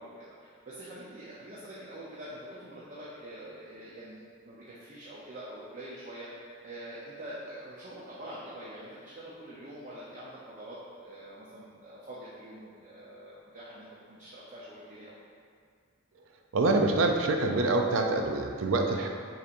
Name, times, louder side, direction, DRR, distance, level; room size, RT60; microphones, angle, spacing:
voice 1, 0.0-6.3 6.6-15.1, right 1 dB, 40° right, -8 dB, 0.6 m, -45 dB
voice 2, 16.5-19.1, right 2 dB, 90° right, 3 dB, 0.4 m, -26 dB
6.6 x 2.9 x 2.5 m, 2.1 s
head